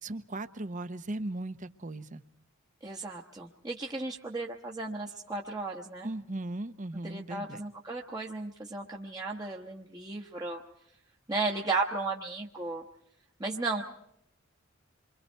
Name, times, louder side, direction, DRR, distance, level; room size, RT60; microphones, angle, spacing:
voice 1, 0.0-2.2 6.0-7.6, right 2 dB, 40° right, 0.9 m, -37 dB
voice 2, 2.8-6.1 7.0-10.6 11.3-12.8 13.4-13.8, right 3 dB, 20° right, 1.1 m, -35 dB
28.5 x 24.5 x 4.5 m
head